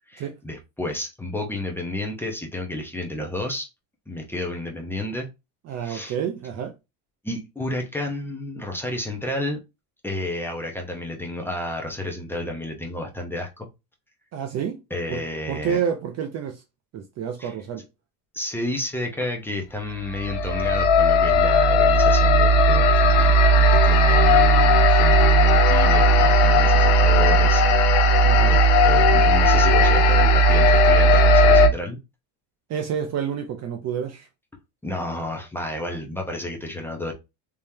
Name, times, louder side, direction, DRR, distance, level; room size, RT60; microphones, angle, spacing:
voice 1, 0.1-3.7 4.1-5.3 5.8-6.1 7.2-9.6 10.0-13.7 14.9-15.8 17.4-17.5 18.3-27.6 28.1-32.0 34.8-37.1, left 1 dB, 5° left, 0.7 m, -31 dB
voice 2, 5.7-6.7 14.3-14.8 15.1-15.2 15.5-16.6 16.9-17.8 28.2-28.5 32.7-34.3, right 8 dB, 35° right, 0.5 m, -29 dB
sound 1, 20.1-31.7, equal, 60° left, 0.9 m, -16 dB
3.7 x 3.1 x 2.7 m
cardioid pair, 150°, 46 cm